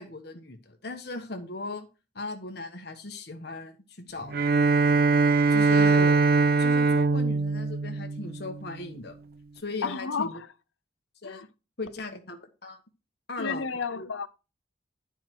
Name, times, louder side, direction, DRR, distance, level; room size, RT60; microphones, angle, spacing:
voice 1, 0.0-1.9 2.1-4.5 5.5-6.2 6.6-9.2 9.5-10.4 11.2-11.5 11.8-12.8 13.3-14.1, left 2 dB, 55° left, 1.3 m, -38 dB
Bowed string instrument, 4.3-8.7, right 4 dB, 50° right, 0.5 m, -22 dB
voice 2, 9.8-10.3 11.2-11.4 13.4-14.3, left 5 dB, 90° left, 0.7 m, -31 dB
11.5 x 4.6 x 4.6 m
head